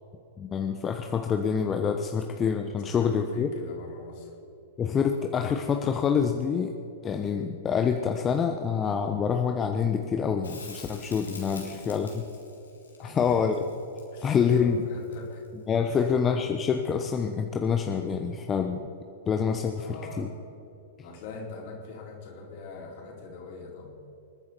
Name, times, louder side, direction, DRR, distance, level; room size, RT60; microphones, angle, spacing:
voice 1, 0.4-3.5 4.8-6.7 7.0-12.2 13.0-13.6 14.2-14.8 15.7-18.8 19.3-19.9 20.2-20.3, left 6 dB, 25° left, 4 dB, 1.0 m, -26 dB
voice 2, 2.8-4.3 11.5-12.1 13.0-13.5 14.1-15.4 15.9-16.1 19.8-20.3 21.0-23.9, left 4 dB, 55° left, -1 dB, 4.4 m, -43 dB
Crackle, 10.4-15.6 18.3-18.4, left 4 dB, 90° left, 3.6 m, -47 dB
27.5 x 9.8 x 4.6 m, 2.9 s
hypercardioid pair, 110°, 0 cm